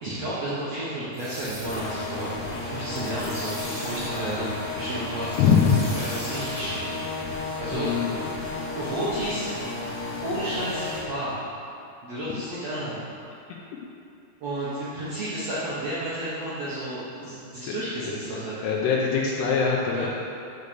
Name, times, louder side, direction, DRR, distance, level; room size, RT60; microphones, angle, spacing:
voice 1, 0.0-2.3 2.6-6.9 7.6-7.9 8.7-9.5 10.2-11.4 12.0-13.1 14.4-18.6 19.9-20.1, right 1 dB, 65° right, -10 dB, 1.6 m, -32 dB
sound 1, 1.1-7.5, right 1 dB, 5° right, 0.4 m, -40 dB
sound 2, 1.6-11.0, left 3 dB, 65° left, 2.2 m, -33 dB
voice 2, 5.4-5.8 7.7-8.2 17.7-17.8 18.1-18.2 18.6-20.1, left 6 dB, 80° left, -3 dB, 2.8 m, -22 dB
6.7 x 6.5 x 6.8 m, 2.6 s
omnidirectional pair, 4.8 m